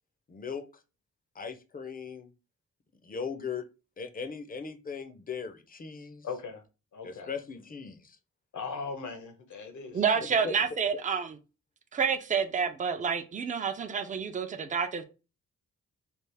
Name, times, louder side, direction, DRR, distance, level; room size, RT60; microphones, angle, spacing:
voice 1, 0.3-0.6 1.3-2.3 3.0-3.6 4.0-6.3 7.0-8.2 10.4-10.5, left 6 dB, 30° left, 0.5 m, -38 dB
voice 2, 6.2-6.6 6.9-7.3 8.5-10.3, left 5 dB, 75° left, 0.9 m, -39 dB
voice 3, 9.9-11.4 11.9-15.0, right 6 dB, 25° right, 0.4 m, -29 dB
3.4 x 2.4 x 3.3 m
wide cardioid pair, 105°, 30 cm